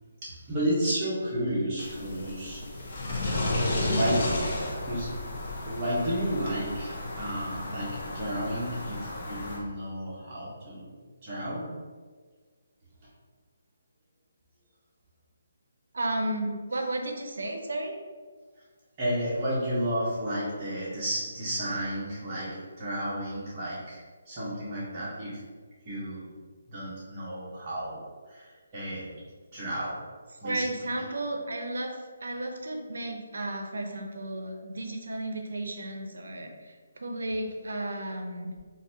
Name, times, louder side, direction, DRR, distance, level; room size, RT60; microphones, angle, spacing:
voice 1, 0.2-2.6 3.9-4.3 4.7-5.1 5.6-10.9 11.2-11.7 19.0-25.4 25.8-26.3 26.7-29.1 29.5-30.0 30.4-30.9, right 1 dB, 25° right, -8 dB, 1.1 m, -32 dB
sound 1, 1.8-9.6, left 2 dB, 40° left, 0.7 m, -32 dB
voice 2, 15.9-17.9 30.4-38.5, right 1 dB, 80° right, 3 dB, 0.5 m, -33 dB
4.0 x 2.6 x 2.9 m, 1.5 s
hypercardioid pair, 165°, 0 cm